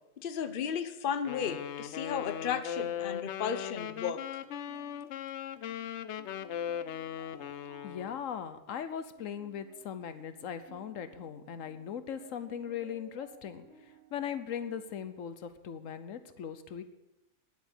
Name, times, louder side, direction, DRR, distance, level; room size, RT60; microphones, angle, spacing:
voice 1, 0.2-4.2, left 7 dB, 50° left, 10 dB, 0.9 m, -34 dB
Wind instrument woodwind instrument, 1.3-8.2, left 10 dB, 70° left, 0.9 m, -38 dB
sound 1, 4.1-15.0, right 4 dB, 60° right, 3.1 m, -60 dB
voice 2, 7.8-13.7 14.1-16.8, left 8 dB, 85° left, 11 dB, 1.2 m, -39 dB
10.0 x 8.0 x 8.3 m, 0.94 s
omnidirectional pair, 1.3 m